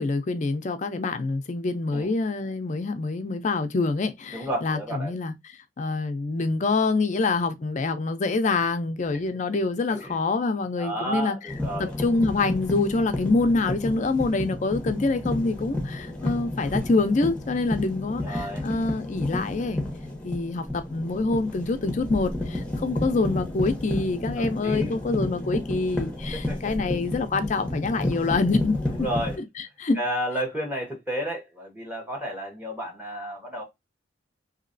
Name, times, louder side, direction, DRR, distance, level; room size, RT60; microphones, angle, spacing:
voice 1, 0.0-5.3 5.8-11.4 11.8-19.8 20.2-28.8 29.6-30.0, left 3 dB, 40° left, 0.4 m, -26 dB
voice 2, 4.3-5.1 9.9-10.2 10.8-11.9 18.2-18.6 24.4-24.9 26.3-26.7 28.9-29.4 29.9-33.6, equal, 10° right, 1.2 m, -32 dB
sound 1, 11.5-29.4, left 1 dB, 5° left, 0.8 m, -31 dB
2.9 x 2.8 x 2.5 m
head